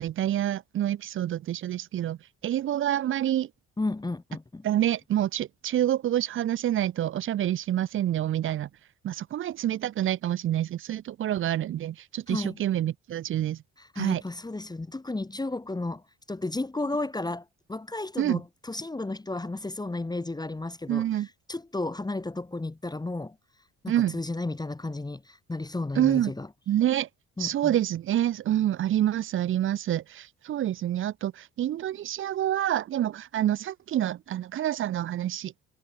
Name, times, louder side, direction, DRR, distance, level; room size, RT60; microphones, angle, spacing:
voice 1, 0.0-2.2 2.4-3.5 4.6-8.7 9.0-13.6 14.0-14.2 18.2-18.4 20.9-21.3 23.9-24.2 26.0-26.3 26.7-27.1 27.4-35.6, right 12 dB, 45° right, 0.4 m, -27 dB
voice 2, 3.8-4.6 12.3-12.6 13.8-23.4 23.8-26.5 27.4-27.8, left 2 dB, 15° left, 1.0 m, -33 dB
cardioid pair, 90°, 30 cm